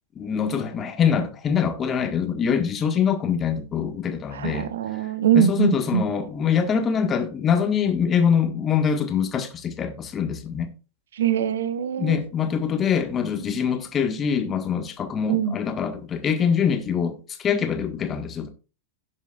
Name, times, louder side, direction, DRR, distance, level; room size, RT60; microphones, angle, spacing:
voice 1, 0.1-5.0 5.3-10.7 12.0-18.5, left 7 dB, 25° left, 1.6 m, -24 dB
voice 2, 4.3-6.1 11.1-12.2 15.3-15.6, right 8 dB, 60° right, 0.9 m, -22 dB
17.0 x 7.2 x 2.5 m
figure-of-eight pair, 90°, 0 cm